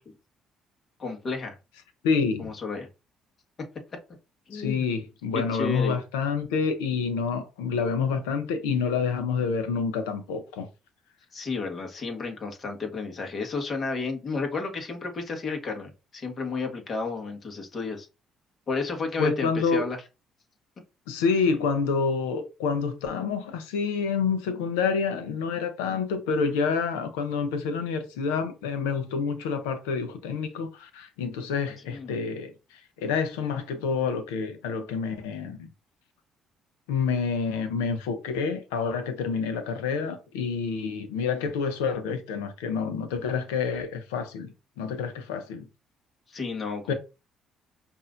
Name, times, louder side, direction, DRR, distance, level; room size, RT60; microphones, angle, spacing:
voice 1, 1.0-1.6 2.4-2.9 4.5-4.8 5.3-6.0 11.3-18.1 18.7-20.0 31.9-32.2 46.3-46.9, left 4 dB, 45° left, 1.5 m, -32 dB
voice 2, 2.0-2.5 4.5-10.7 19.2-19.8 21.1-32.5 33.0-35.7 36.9-44.5 44.8-45.7 46.9-47.0, left 5 dB, 90° left, 0.8 m, -28 dB
5.4 x 2.7 x 2.5 m
supercardioid pair, 60°, 0 cm